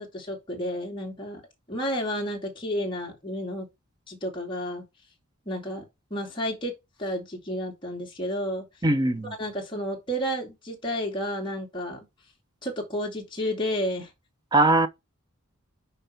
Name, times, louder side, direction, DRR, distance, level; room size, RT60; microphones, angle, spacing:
voice 1, 0.0-1.4 1.7-3.7 4.1-4.8 5.5-5.8 6.1-6.7 7.0-8.7 9.4-12.1 12.6-14.1, equal, 25° left, 2.5 m, -31 dB
voice 2, 8.8-9.3 14.5-14.9, right 2 dB, 20° right, 0.9 m, -20 dB
6.4 x 4.8 x 5.9 m
head